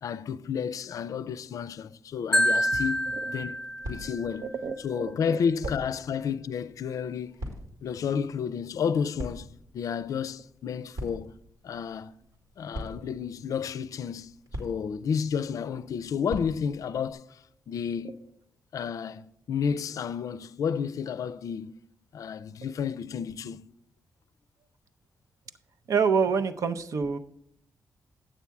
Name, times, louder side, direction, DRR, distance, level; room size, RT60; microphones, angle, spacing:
voice 1, 0.0-3.1 3.3-3.6 3.9-4.5 4.8-7.4 7.8-11.3 11.6-12.1 12.6-14.3 14.6-17.4 17.7-18.1 18.7-19.2 19.5-21.8 22.1-23.6, left 7 dB, 70° left, 0.4 m, -31 dB
Marimba xylophone, 2.3-4.4, equal, 10° left, 0.4 m, -27 dB
sound 1, 2.6-17.1, equal, 85° right, 2.3 m, -44 dB
voice 2, 4.4-5.4 25.9-27.2, right 5 dB, 70° right, 0.6 m, -27 dB
9.0 x 7.1 x 4.6 m
cardioid pair, 75°, 6 cm